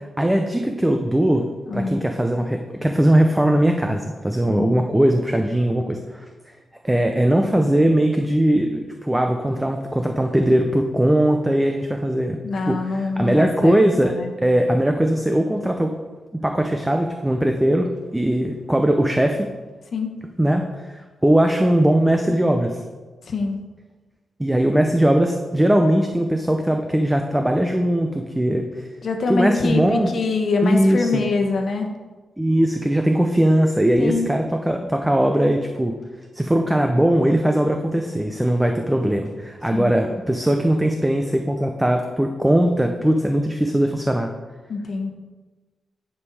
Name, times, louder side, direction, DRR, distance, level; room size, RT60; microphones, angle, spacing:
voice 1, 0.2-1.5 1.7-6.3 6.8-15.9 16.4-19.5 20.4-22.8 24.4-28.9 29.3-30.1 30.6-31.2 32.4-36.0 36.3-44.3, right 1 dB, 10° right, 4 dB, 0.5 m, -20 dB
voice 2, 1.7-2.0 4.5-4.7 12.4-14.3 19.9-20.1 23.3-23.6 29.0-31.9 34.0-34.3 39.7-39.9 44.7-45.1, left 3 dB, 55° left, 4 dB, 1.2 m, -24 dB
9.8 x 5.4 x 4.8 m, 1.3 s
wide cardioid pair, 140°, 0 cm